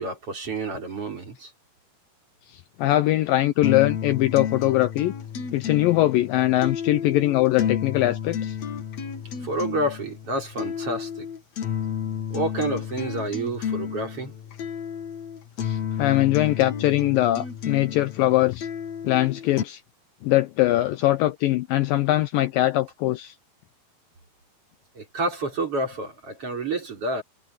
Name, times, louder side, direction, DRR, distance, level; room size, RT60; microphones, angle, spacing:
voice 1, 0.0-1.5 9.4-11.3 12.3-14.3 25.0-27.2, right 2 dB, 35° right, 5.5 m, -29 dB
voice 2, 2.5-5.1 5.5-8.6 15.6-18.7 19.0-19.8 20.2-23.4, left 15 dB, 75° left, 2.2 m, -22 dB
sound 1, 3.6-19.6, left 8 dB, 55° left, 2.5 m, -31 dB
omnidirectional pair, 4.5 m